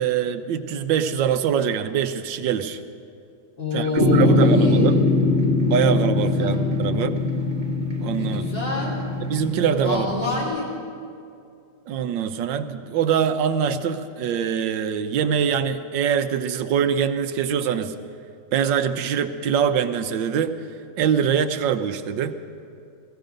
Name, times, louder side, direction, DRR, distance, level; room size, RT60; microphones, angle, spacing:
voice 1, 0.0-2.8 3.7-5.0 5.7-7.2 8.0-8.4 9.2-10.1 11.9-17.9 18.5-20.6 21.0-22.4, right 8 dB, 85° right, 9 dB, 1.4 m, -23 dB
voice 2, 3.6-5.0 6.4-6.6 8.2-9.1 9.8-10.7, left 2 dB, 75° left, -6 dB, 4.8 m, -28 dB
sound 1, 4.0-10.4, left 3 dB, 30° right, 1.4 m, -22 dB
18.0 x 15.5 x 5.1 m, 2.5 s
omnidirectional pair, 1.9 m